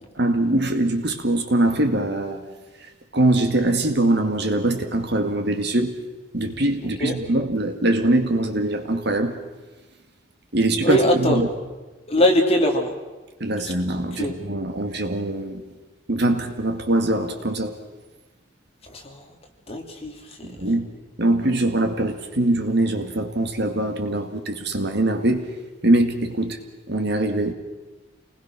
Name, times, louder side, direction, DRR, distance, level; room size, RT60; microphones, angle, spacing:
voice 1, 0.2-2.4 3.1-6.0 6.3-9.4 10.5-11.5 13.4-15.6 16.1-17.8 20.4-20.9 21.2-25.5 25.8-26.6 26.9-27.5, right 1 dB, 60° right, 6 dB, 2.2 m, -22 dB
voice 2, 10.8-11.4 12.1-12.9 14.2-14.4 18.9-19.2 19.7-20.1, equal, 30° left, 2 dB, 2.7 m, -21 dB
28.0 x 20.0 x 6.2 m, 1.2 s
head